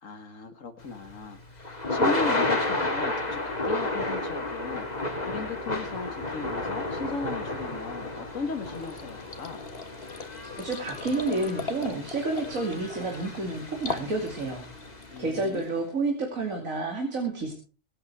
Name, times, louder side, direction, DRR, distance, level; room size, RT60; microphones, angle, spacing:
voice 1, 0.0-9.7 15.1-15.6, left 4 dB, 75° left, 7 dB, 1.9 m, -37 dB
Thunder / Rain, 0.9-15.1, left 2 dB, 30° left, 2.4 m, -32 dB
sound 1, 8.6-15.7, left 4 dB, 50° left, 1.7 m, -40 dB
voice 2, 10.6-14.6 15.2-17.5, right 2 dB, 85° right, 2 dB, 3.1 m, -30 dB
24.0 x 9.0 x 4.7 m, 0.36 s
omnidirectional pair, 1.4 m